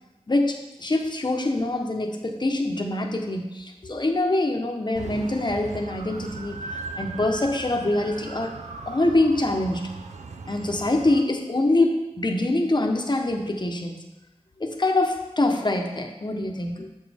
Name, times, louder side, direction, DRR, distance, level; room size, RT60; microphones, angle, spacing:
voice 1, 0.3-8.5 8.9-9.8 10.5-14.0 14.6-16.9, left 2 dB, 40° left, 3 dB, 0.9 m, -24 dB
sound 1, 5.0-11.2, right 4 dB, 85° right, 0.5 m, -38 dB
7.4 x 6.2 x 3.4 m, 1.0 s
wide cardioid pair, 70°, 11 cm